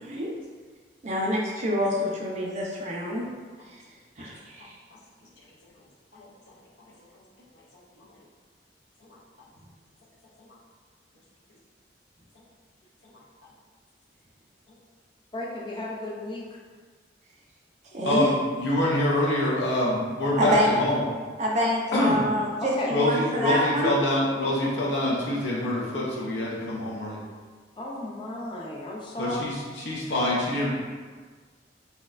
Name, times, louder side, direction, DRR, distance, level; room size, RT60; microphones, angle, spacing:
voice 1, 1.0-3.2 3.7-3.8 4.2-4.8 17.9-18.3 20.4-20.7 21.4-23.9, equal, 40° right, -2 dB, 0.4 m, -26 dB
voice 2, 15.3-16.5 21.9-22.2 22.6-22.9 27.8-29.4, left 1 dB, 30° left, -3 dB, 0.4 m, -33 dB
voice 3, 18.0-21.0 21.9-22.2 22.9-27.2 29.2-30.7, left 1 dB, 80° left, -5 dB, 0.6 m, -25 dB
4.1 x 2.2 x 2.4 m, 1.5 s
head